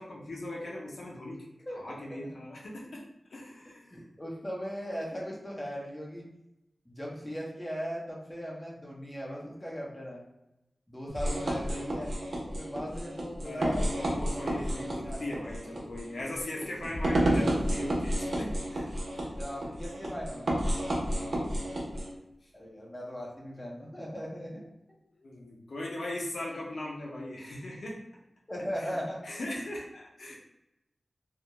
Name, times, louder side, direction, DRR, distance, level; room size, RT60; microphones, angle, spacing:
voice 1, 0.0-1.5 1.7-3.0 3.3-4.0 13.4-19.2 21.0-22.0 25.2-28.0 28.8-28.9 29.2-30.4, left 1 dB, 80° left, -3 dB, 0.5 m, -39 dB
voice 2, 1.7-2.3 3.9-6.3 6.9-10.2 10.9-12.1 12.4-15.4 19.2-20.5 22.5-24.7 28.5-29.3, equal, 10° left, -4 dB, 0.7 m, -39 dB
sound 1, 11.1-22.1, right 1 dB, 85° right, 0.5 m, -31 dB
2.3 x 2.1 x 2.9 m, 0.90 s
wide cardioid pair, 85°, 0 cm